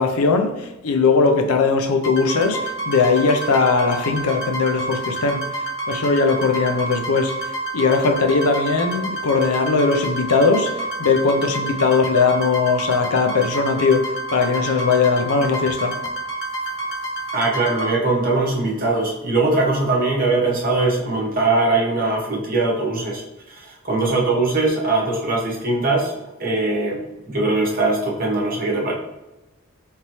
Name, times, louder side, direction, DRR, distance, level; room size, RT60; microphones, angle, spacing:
voice 1, 0.0-5.4 5.9-7.4 7.7-16.0, left 4 dB, 90° left, 0.5 m, -19 dB
sound 1, 2.0-17.9, right 2 dB, 60° left, 0.8 m, -28 dB
voice 2, 17.3-28.9, right 2 dB, 40° right, 1.0 m, -21 dB
4.1 x 3.5 x 3.0 m
head